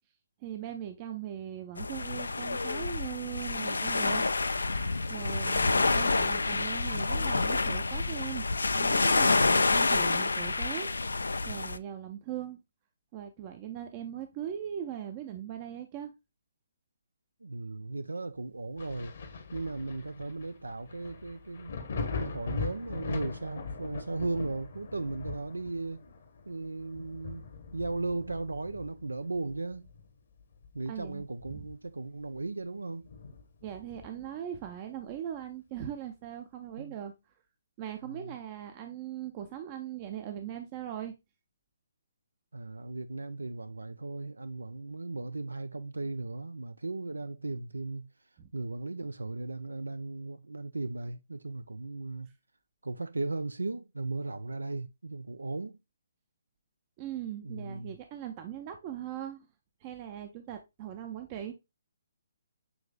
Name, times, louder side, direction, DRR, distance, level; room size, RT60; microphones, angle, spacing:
voice 1, 0.4-4.2 5.1-8.5 8.7-10.9 11.5-12.6 13.1-16.1 30.9-31.6 33.6-37.1 37.8-41.1 48.4-48.5 57.0-59.5 59.8-61.5, right 10 dB, 35° right, 0.5 m, -40 dB
sound 1, 1.8-11.8, left 3 dB, 80° left, 0.3 m, -28 dB
voice 2, 5.4-5.7 17.4-19.1 19.5-21.8 22.2-26.0 26.5-27.5 27.7-29.9 30.7-33.1 36.8-37.0 38.1-38.4 42.5-48.1 48.5-52.3 52.8-55.8 57.4-57.9, right 3 dB, 85° right, 0.3 m, -36 dB
Thunder, 18.8-30.1 30.5-32.0 32.4-32.5 33.0-34.3 35.8-35.9, left 4 dB, 60° left, 1.0 m, -41 dB
6.9 x 3.2 x 2.2 m
figure-of-eight pair, 135°, 0 cm